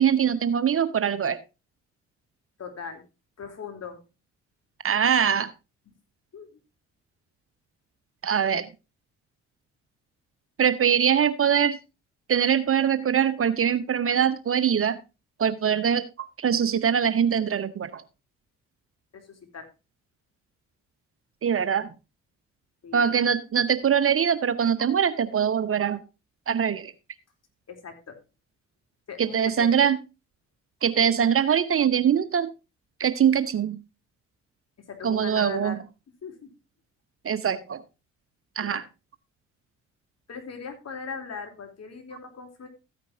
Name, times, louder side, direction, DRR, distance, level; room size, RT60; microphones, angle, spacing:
voice 1, 0.0-1.4 4.8-5.5 8.2-8.7 10.6-11.8 12.3-15.0 15.4-18.0 21.4-21.9 22.9-26.0 26.5-26.9 29.2-30.0 30.8-32.5 33.0-33.8 35.0-35.8 37.2-37.8 38.6-38.8, right 8 dB, 40° right, 15 dB, 0.9 m, -23 dB
voice 2, 2.6-3.0 3.4-4.0 6.3-6.6 19.1-19.7 22.8-23.2 27.7-28.2 29.1-29.7 34.9-35.8 36.2-36.5 38.6-38.8 40.3-42.7, left 5 dB, 45° left, 5 dB, 3.4 m, -39 dB
14.0 x 9.4 x 2.7 m, 0.28 s
hypercardioid pair, 45°, 35 cm